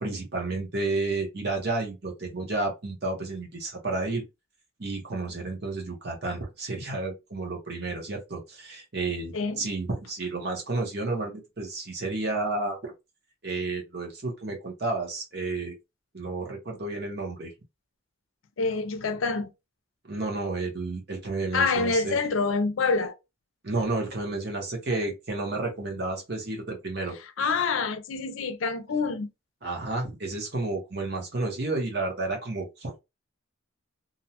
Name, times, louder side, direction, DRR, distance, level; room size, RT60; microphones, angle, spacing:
voice 1, 0.0-4.2 4.8-12.9 13.4-15.7 16.1-17.5 20.1-22.2 23.6-27.2 29.6-33.0, right 2 dB, 55° right, 0.9 m, -31 dB
voice 2, 9.3-9.6 18.6-19.5 21.5-23.1 27.4-29.3, left 4 dB, 85° left, 0.5 m, -26 dB
2.6 x 2.1 x 2.8 m
head